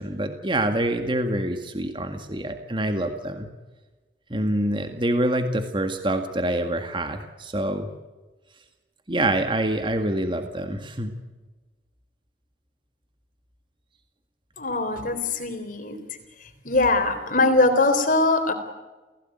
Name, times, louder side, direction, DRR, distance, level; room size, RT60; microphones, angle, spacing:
voice 1, 0.0-3.5 4.3-7.9 9.1-11.1, right 1 dB, 30° right, 6 dB, 1.9 m, -26 dB
voice 2, 14.6-16.0 16.6-18.5, left 2 dB, 50° left, 8 dB, 3.8 m, -21 dB
29.0 x 17.0 x 9.3 m, 1.2 s
head